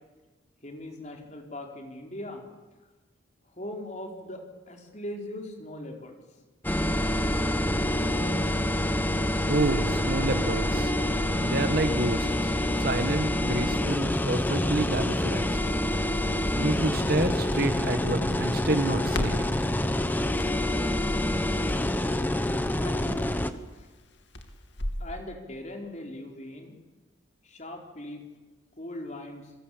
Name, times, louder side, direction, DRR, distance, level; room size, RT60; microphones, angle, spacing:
voice 1, 0.6-2.5 3.5-6.2 22.6-23.4 23.7-23.9 25.0-26.8 27.4-28.2 28.8-29.5, left 1 dB, 35° left, 2 dB, 4.5 m, -40 dB
sound 1, 6.6-23.5, left 1 dB, 10° left, 1.1 m, -27 dB
voice 2, 9.5-10.9 11.4-12.5 12.8-15.6 16.5-19.5, right 2 dB, 45° right, 9 dB, 1.7 m, -29 dB
Crackle, 15.8-25.1, left 1 dB, 60° left, 2.8 m, -40 dB
29.0 x 22.5 x 8.6 m, 1.2 s
head